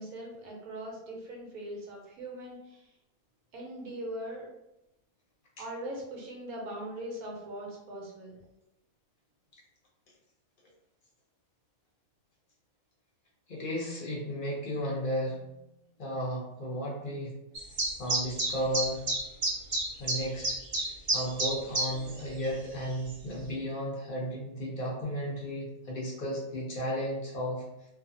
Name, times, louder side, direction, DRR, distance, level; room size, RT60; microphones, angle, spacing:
voice 1, 0.0-2.8 3.5-4.5 5.6-8.4, right 1 dB, 80° right, -1 dB, 1.2 m, -40 dB
voice 2, 13.5-15.7 16.0-17.4 18.0-19.1 20.0-20.6 21.1-27.6, equal, 60° left, -3 dB, 0.5 m, -34 dB
sound 1, 17.5-22.1 22.4-22.5 23.1-23.2, right 2 dB, 35° right, 0.6 m, -29 dB
2.5 x 2.4 x 2.7 m, 0.89 s
omnidirectional pair, 1.5 m